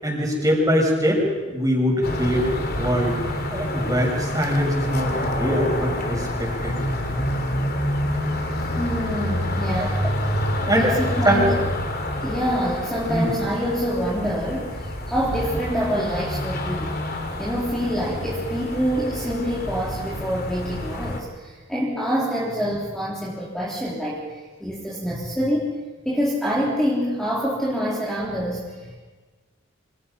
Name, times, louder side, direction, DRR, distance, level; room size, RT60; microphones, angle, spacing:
voice 1, 0.0-3.2 3.5-6.7 10.7-10.9 11.2-11.5 13.1-13.3, equal, 15° right, 0 dB, 6.7 m, -22 dB
sound 1, 2.0-21.2, left 1 dB, 50° left, 3.6 m, -28 dB
voice 2, 8.6-10.3 10.8-11.6 12.2-17.0 17.4-25.7 26.1-29.0, equal, ahead, -6 dB, 3.7 m, -26 dB
28.5 x 27.0 x 5.7 m, 1.4 s
head